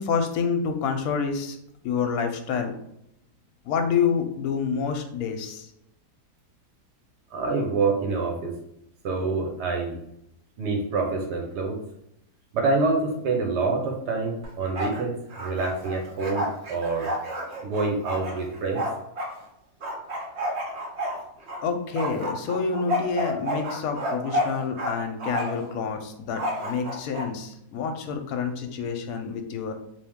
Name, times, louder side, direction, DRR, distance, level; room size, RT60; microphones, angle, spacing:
voice 1, 0.0-1.6 1.8-2.7 3.7-5.7 21.6-29.7, left 6 dB, 70° left, 5 dB, 1.0 m, -28 dB
voice 2, 7.3-8.6 9.0-10.0 10.6-11.8 12.5-17.1 17.6-18.8, right 3 dB, 80° right, 1 dB, 1.4 m, -26 dB
Bark, 14.4-15.0 15.3-19.3 19.8-21.6 21.9-24.9 25.2-25.7 26.3-27.3, equal, 55° right, 0.8 m, -30 dB
3.5 x 2.8 x 3.5 m, 0.77 s
omnidirectional pair, 1.7 m